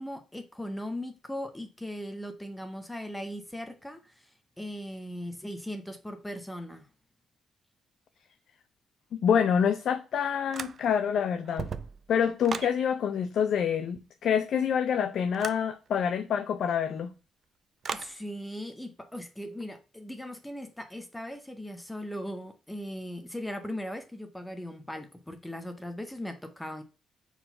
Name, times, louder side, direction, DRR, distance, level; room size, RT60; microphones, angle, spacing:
voice 1, 0.0-6.9 17.9-26.8, equal, 5° left, 0.7 m, -39 dB
voice 2, 9.1-11.7 12.1-17.1, left 7 dB, 60° left, 0.5 m, -27 dB
sound 1, 10.5-11.1 11.4-12.8 15.3-15.7 17.8-18.2, right 6 dB, 45° right, 0.4 m, -37 dB
4.7 x 3.8 x 5.5 m
cardioid pair, 145°, 0 cm